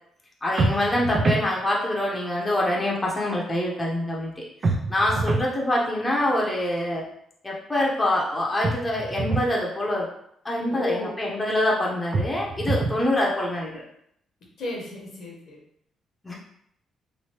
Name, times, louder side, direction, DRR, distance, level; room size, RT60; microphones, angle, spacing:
voice 1, 0.4-7.1 7.4-10.1 10.4-13.8 16.2-16.3, left 1 dB, 15° left, -4 dB, 0.8 m, -25 dB
sound 1, 0.6-1.5 4.6-5.5 8.6-9.5 12.1-13.1, right 3 dB, 45° right, 0.4 m, -25 dB
voice 2, 10.7-11.2 14.6-15.6, left 2 dB, 65° left, -2 dB, 1.0 m, -33 dB
3.2 x 2.6 x 2.8 m, 0.71 s
cardioid pair, 90°, 0 cm